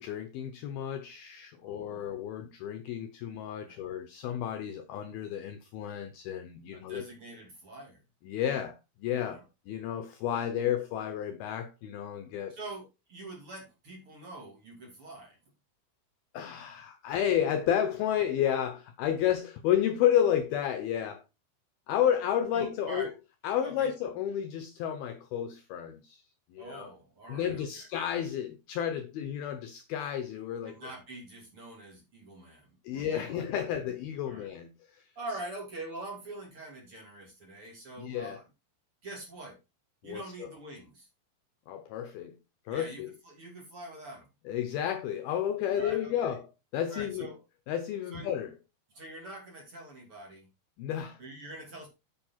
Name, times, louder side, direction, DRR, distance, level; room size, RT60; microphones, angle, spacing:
voice 1, 0.0-7.1 8.2-12.6 16.3-21.2 21.9-23.1 23.4-26.2 26.5-26.9 27.3-30.8 32.8-35.0 38.0-38.4 40.0-40.5 41.7-42.4 42.7-43.1 44.5-46.5 46.7-47.3 47.7-48.5 50.8-51.2, left 10 dB, 80° left, 2.3 m, -31 dB
voice 2, 1.6-2.1 3.7-3.8 6.7-8.0 9.3-9.4 12.5-15.4 22.5-23.1 23.6-23.9 26.6-27.9 30.6-33.5 33.8-33.9 34.2-34.5 35.2-38.4 39.0-39.6 40.0-41.1 42.7-44.3 45.7-46.4 46.9-47.4 48.1-48.3 48.9-50.5 51.2-51.9, right 2 dB, 35° right, 2.9 m, -44 dB
8.4 x 7.3 x 4.3 m
omnidirectional pair, 5.2 m